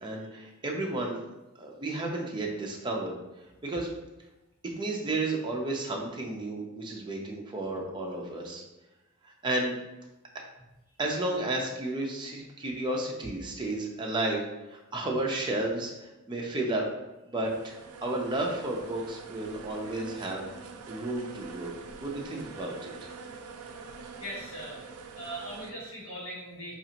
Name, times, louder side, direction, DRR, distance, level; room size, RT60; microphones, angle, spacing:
voice 1, 0.0-1.2 1.6-3.1 3.6-3.9 4.8-8.6 9.4-9.8 11.0-14.4 14.7-16.9 17.3-17.8 18.0-20.5 20.8-21.7 22.0-22.9, right 2 dB, 20° right, -1 dB, 0.5 m, -32 dB
sound 1, 17.4-25.7, right 4 dB, 80° right, 0.4 m, -45 dB
voice 2, 24.0-24.8 25.2-26.7, right 1 dB, 75° left, -4 dB, 1.3 m, -40 dB
4.0 x 2.5 x 2.8 m, 0.99 s
head